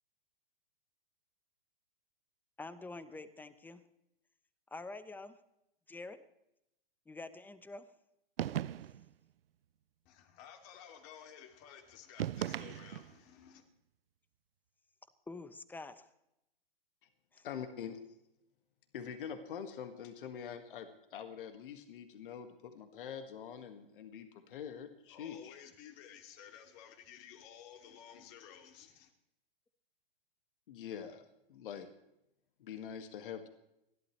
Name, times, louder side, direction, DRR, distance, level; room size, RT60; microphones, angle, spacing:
voice 1, 2.6-3.8 4.7-5.4 5.9-6.2 7.1-7.9 15.3-16.1 17.3-17.5, left 3 dB, 5° left, 14 dB, 0.9 m, -47 dB
sound 1, 8.4-9.1 12.2-13.2, right 11 dB, 80° right, 0.6 m, -37 dB
voice 2, 10.0-13.6 25.1-29.1, left 9 dB, 45° left, 5 dB, 2.6 m, -54 dB
voice 3, 17.4-18.0 18.9-25.5 30.7-31.2 31.5-31.9 32.6-33.5, left 8 dB, 65° left, 8 dB, 1.8 m, -44 dB
29.5 x 12.0 x 3.2 m, 0.84 s
hypercardioid pair, 120°, 29 cm